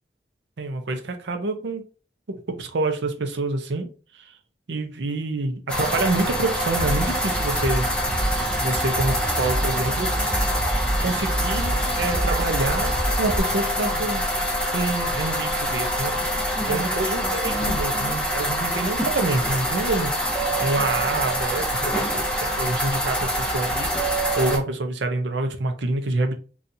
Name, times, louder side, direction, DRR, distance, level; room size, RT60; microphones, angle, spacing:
voice 1, 0.6-1.9 2.3-3.9 4.2-4.3 4.7-7.9 8.6-10.2 11.0-14.2 14.7-16.1 16.6-20.1 20.6-26.3, right 2 dB, 80° right, 0.6 m, -27 dB
sound 1, 5.7-24.6, equal, 5° left, 0.6 m, -25 dB
sound 2, 6.7-13.4, right 1 dB, 35° left, 1.8 m, -28 dB
4.0 x 2.4 x 2.6 m
head